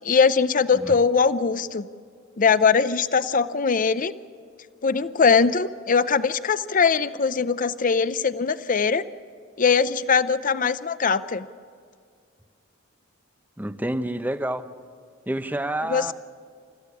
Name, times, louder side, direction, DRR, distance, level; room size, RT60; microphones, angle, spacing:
voice 1, 0.0-1.9 2.4-4.1 4.8-9.0 9.6-11.5 15.9-16.1, left 5 dB, 40° left, 14 dB, 0.6 m, -21 dB
voice 2, 13.6-14.7 15.3-16.1, right 1 dB, 10° right, 10 dB, 0.8 m, -28 dB
30.0 x 14.5 x 8.4 m, 2.2 s
head